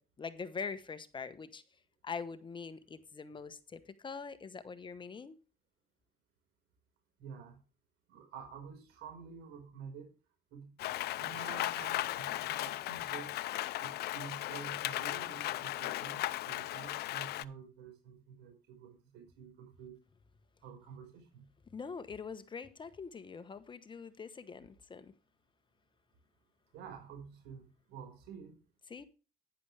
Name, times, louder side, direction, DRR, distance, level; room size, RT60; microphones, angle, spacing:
voice 1, 0.0-1.6 2.0-5.4 21.7-25.1 28.9-29.0, left 5 dB, 30° left, 1.0 m, -43 dB
voice 2, 7.2-7.6 8.1-10.1 10.5-10.7 11.2-13.3 13.8-20.0 20.6-21.4 26.7-28.6, right 6 dB, 85° right, 4.9 m, -49 dB
Rain, 10.8-17.4, left 16 dB, 70° left, 0.5 m, -37 dB
11.0 x 9.8 x 3.4 m
cardioid pair, 110°, 17 cm